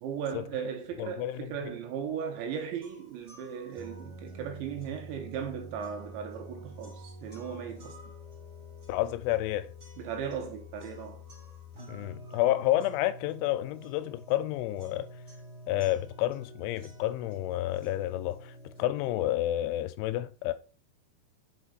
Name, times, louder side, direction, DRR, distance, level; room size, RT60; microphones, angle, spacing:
voice 1, 0.0-8.0 10.0-11.2, right 7 dB, 80° right, 3.2 m, -37 dB
voice 2, 1.0-1.5 8.9-9.7 11.9-15.1 15.7-20.5, left 14 dB, 85° left, 3.0 m, -30 dB
sound 1, 2.8-18.8, equal, 50° right, 0.8 m, -48 dB
5.9 x 5.8 x 3.9 m
omnidirectional pair, 5.4 m